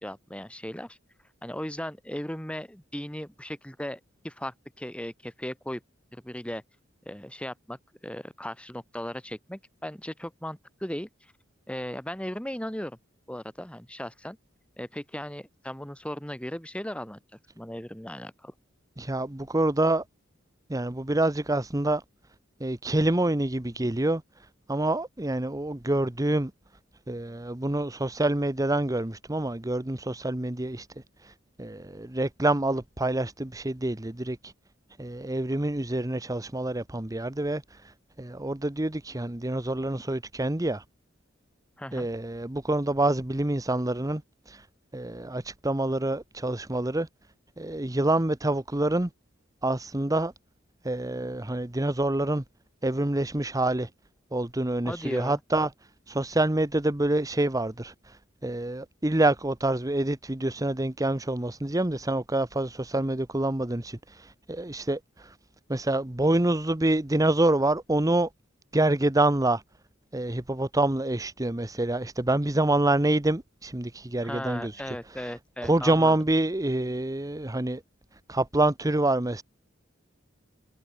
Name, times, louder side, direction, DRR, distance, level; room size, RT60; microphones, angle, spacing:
voice 1, 0.0-1.0 1.4-5.8 6.1-6.6 7.0-11.1 11.7-13.0 13.3-14.4 14.8-17.2 17.5-18.5 41.8-42.1 54.8-55.4 74.2-76.1, equal, 5° left, 3.1 m, -37 dB
voice 2, 19.0-20.0 20.7-22.0 22.6-24.2 24.7-26.5 27.1-30.9 31.2-34.5 35.0-40.8 41.9-44.7 44.9-47.1 47.6-49.1 49.6-50.3 50.8-52.4 52.8-53.9 54.3-55.7 56.1-65.3 65.7-68.3 68.7-69.6 70.1-75.3 75.6-77.8 78.3-79.4, right 2 dB, 20° right, 1.0 m, -27 dB
head